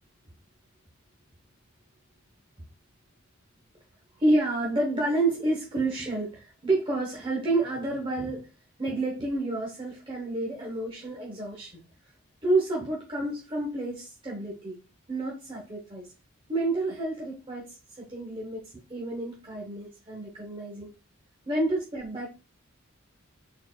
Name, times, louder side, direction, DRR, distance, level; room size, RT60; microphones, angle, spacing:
voice 1, 4.2-8.5 8.8-11.8 12.4-14.8 15.1-16.1 16.5-20.9 21.5-22.3, right 2 dB, 25° right, -3 dB, 0.9 m, -29 dB
4.4 x 3.8 x 2.2 m, 0.30 s
head